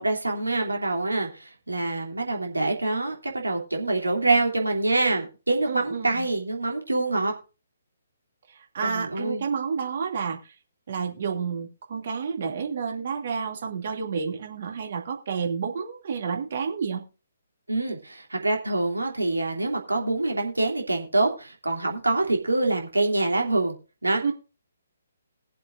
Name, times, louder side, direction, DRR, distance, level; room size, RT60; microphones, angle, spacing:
voice 1, 0.0-7.3 8.8-9.4 17.7-23.7 24.0-24.2, right 2 dB, 75° right, 1 dB, 3.0 m, -25 dB
voice 2, 5.7-6.2 8.7-10.4 10.9-17.0 24.2-24.3, right 6 dB, 45° right, 2 dB, 2.5 m, -30 dB
22.0 x 7.6 x 2.6 m, 0.32 s
figure-of-eight pair, 135°, 0 cm